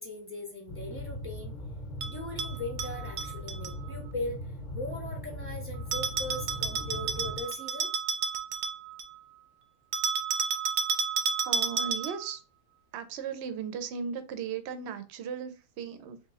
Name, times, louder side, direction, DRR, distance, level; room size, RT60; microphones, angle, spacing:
voice 1, 0.0-1.6 2.1-4.4 4.7-7.9, left 2 dB, 10° right, 0 dB, 0.6 m, -39 dB
sound 1, 0.7-7.4, left 1 dB, 45° left, 0.6 m, -39 dB
Bell, 2.0-3.7 5.9-9.2 9.9-12.3, right 6 dB, 85° right, 1.1 m, -31 dB
voice 2, 11.4-12.4 12.9-16.2, right 7 dB, 65° right, 9 dB, 0.7 m, -36 dB
3.0 x 2.9 x 3.6 m, 0.33 s
omnidirectional pair, 1.6 m